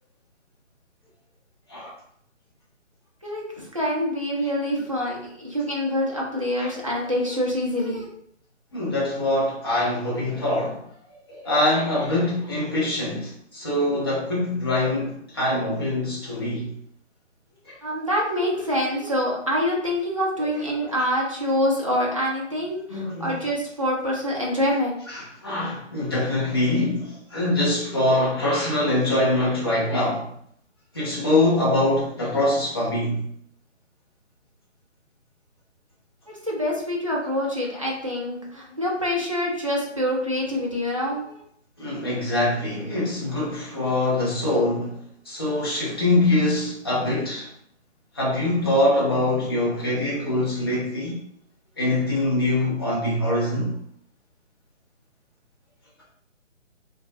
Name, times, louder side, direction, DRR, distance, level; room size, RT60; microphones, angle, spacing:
voice 1, 3.2-8.1 17.8-24.9 36.3-41.4, equal, 30° right, -4 dB, 0.4 m, -26 dB
voice 2, 8.7-10.9 11.3-16.7 20.4-20.5 22.9-23.5 25.1-30.3 30.9-33.2 37.7-37.8 41.8-45.0 45.2-47.5 48.1-51.2 51.8-53.7, left 1 dB, 20° left, -7 dB, 0.6 m, -24 dB
2.3 x 2.2 x 2.6 m, 0.68 s
figure-of-eight pair, 145°, 37 cm